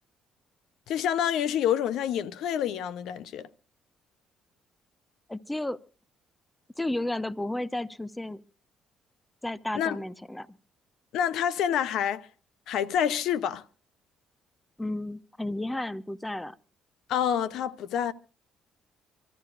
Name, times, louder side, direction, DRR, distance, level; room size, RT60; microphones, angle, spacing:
voice 1, 0.9-3.5 9.7-10.0 11.1-12.3 12.7-13.6 17.1-18.1, left 9 dB, 75° left, 0.7 m, -27 dB
voice 2, 5.3-5.8 6.8-8.4 9.4-10.6 14.8-16.6, left 1 dB, 10° left, 0.7 m, -32 dB
25.5 x 14.0 x 2.5 m
supercardioid pair, 70°, 0 cm